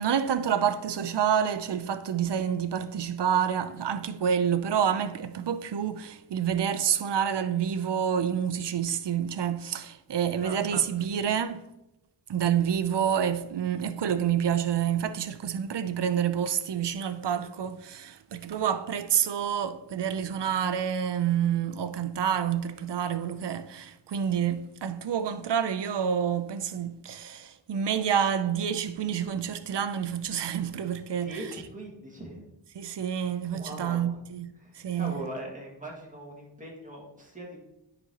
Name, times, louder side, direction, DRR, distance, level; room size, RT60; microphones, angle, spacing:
voice 1, 0.0-11.7 12.3-31.4 32.7-35.2, right 8 dB, 65° right, 0.6 m, -28 dB
voice 2, 10.4-10.8 31.2-32.4 33.5-34.2 34.6-37.6, right 1 dB, 15° right, 1.9 m, -40 dB
9.7 x 5.2 x 2.9 m
wide cardioid pair, 95°, 44 cm